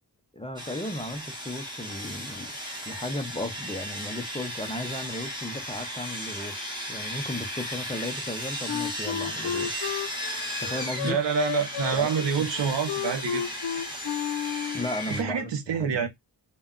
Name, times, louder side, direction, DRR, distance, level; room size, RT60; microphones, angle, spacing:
voice 1, 0.3-2.5 2.8-9.9 10.6-11.2 11.9-12.2 14.7-16.1, left 1 dB, 15° left, 0.3 m, -35 dB
Sawing, 0.6-15.2, equal, 10° right, 0.9 m, -35 dB
Wind instrument woodwind instrument, 8.7-15.0, left 9 dB, 70° left, 0.5 m, -32 dB
voice 2, 11.0-13.6 15.1-16.1, right 7 dB, 85° right, 0.7 m, -27 dB
2.1 x 2.1 x 3.6 m
wide cardioid pair, 105°, 42 cm